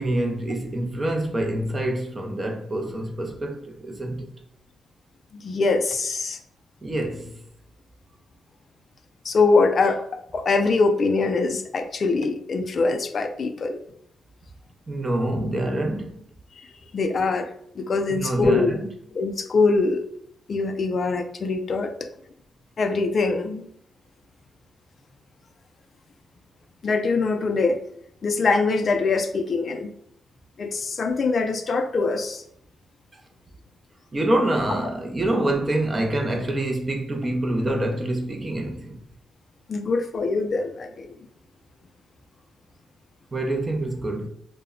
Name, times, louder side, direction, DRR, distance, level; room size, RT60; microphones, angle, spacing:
voice 1, 0.0-4.3 6.8-7.3 14.9-16.2 18.1-18.9 34.1-39.0 43.3-44.3, right 1 dB, 25° right, 0.5 m, -26 dB
voice 2, 5.3-6.4 9.2-10.0 10.3-13.8 16.9-17.5 17.8-18.7 19.1-20.0 20.5-21.9 22.8-23.7 26.8-27.8 28.2-29.9 30.6-32.4 39.7-41.2, left 3 dB, 45° left, 0.3 m, -23 dB
2.1 x 2.0 x 3.6 m
cardioid pair, 120°, 0 cm